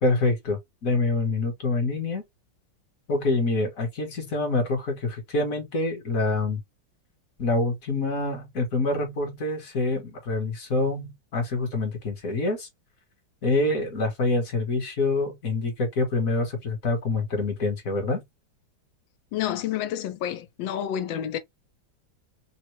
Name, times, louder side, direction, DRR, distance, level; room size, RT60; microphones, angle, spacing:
voice 1, 0.0-2.2 3.1-6.6 7.4-12.7 13.4-18.2, left 2 dB, 50° left, 1.4 m, -26 dB
voice 2, 19.3-21.4, left 10 dB, 85° left, 1.3 m, -29 dB
3.6 x 2.1 x 3.1 m
omnidirectional pair, 2.0 m